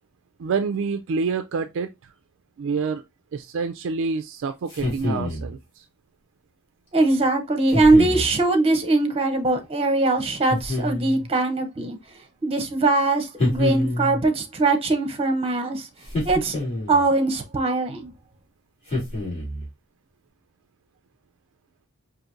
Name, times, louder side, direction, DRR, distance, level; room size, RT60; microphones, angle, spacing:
voice 1, 0.4-2.1 2.6-3.0 3.3-5.8, right 5 dB, 60° right, 0.3 m, -27 dB
sound 1, 4.7-5.5 7.7-8.3 10.5-11.3 13.4-14.3 16.1-17.1 18.9-19.7, left 1 dB, 30° left, 2.3 m, -26 dB
voice 2, 6.9-12.0 12.4-15.9 16.2-18.1, right 2 dB, 25° right, 0.7 m, -21 dB
5.0 x 2.6 x 2.5 m
head